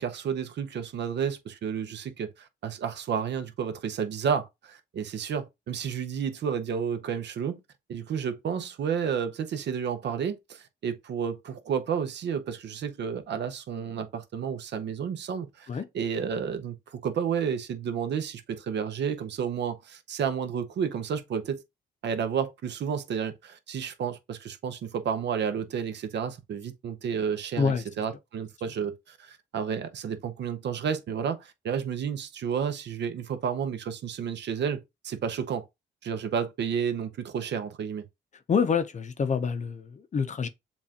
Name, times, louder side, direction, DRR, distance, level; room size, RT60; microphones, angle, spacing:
voice 1, 0.0-7.6 7.9-15.7 15.9-21.6 22.0-35.7 36.0-38.0, right 7 dB, 60° right, 0.8 m, -31 dB
voice 2, 38.5-40.5, left 6 dB, 40° left, 0.6 m, -26 dB
7.2 x 2.5 x 2.8 m
cardioid pair, 90°, 20 cm